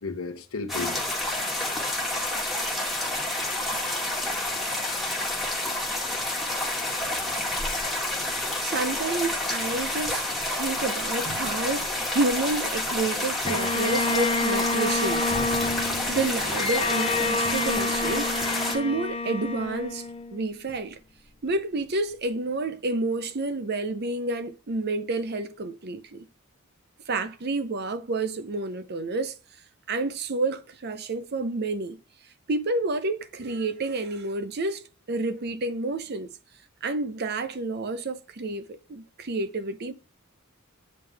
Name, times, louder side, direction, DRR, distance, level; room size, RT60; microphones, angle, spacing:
voice 1, 0.0-2.1, left 3 dB, 75° left, 0.9 m, -37 dB
sound 1, 0.7-18.8, left 1 dB, ahead, 1.8 m, -29 dB
voice 2, 8.6-15.3 16.1-18.3 18.7-20.0 20.3-21.0 21.4-26.3 27.1-29.4 29.9-32.0 32.5-36.3 36.8-39.9, right 3 dB, 50° right, 0.6 m, -29 dB
Bowed string instrument, 13.4-20.7, left 3 dB, 25° left, 0.4 m, -28 dB
8.7 x 5.3 x 3.4 m
head